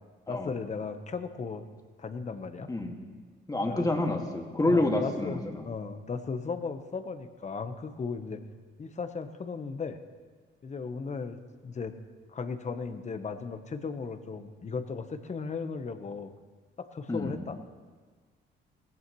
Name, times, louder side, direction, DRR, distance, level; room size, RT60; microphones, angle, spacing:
voice 1, 0.3-1.6 2.0-2.7 3.6-3.9 4.6-8.4 8.8-10.0 10.6-11.9 12.3-16.3 16.8-17.6, left 5 dB, 35° left, 9 dB, 1.1 m, -36 dB
voice 2, 3.5-5.6 17.1-17.4, left 2 dB, 20° left, 2 dB, 2.0 m, -28 dB
19.0 x 16.5 x 3.1 m, 1.5 s
cardioid pair, 90°, 20 cm